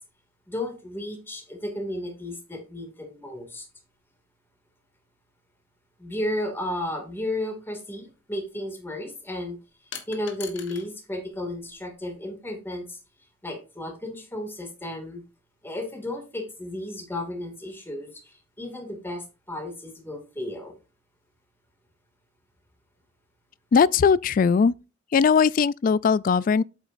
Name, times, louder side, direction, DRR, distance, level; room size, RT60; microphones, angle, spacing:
voice 1, 0.5-3.7 6.0-9.6 10.1-13.0 13.4-15.2 15.6-20.7, left 1 dB, 10° left, 2.2 m, -33 dB
sound 1, 8.0-8.1 9.9-10.9 11.2-12.1, left 8 dB, 70° left, 1.5 m, -42 dB
voice 2, 23.7-24.7 25.1-26.6, left 6 dB, 45° left, 0.3 m, -19 dB
8.2 x 7.9 x 2.5 m
head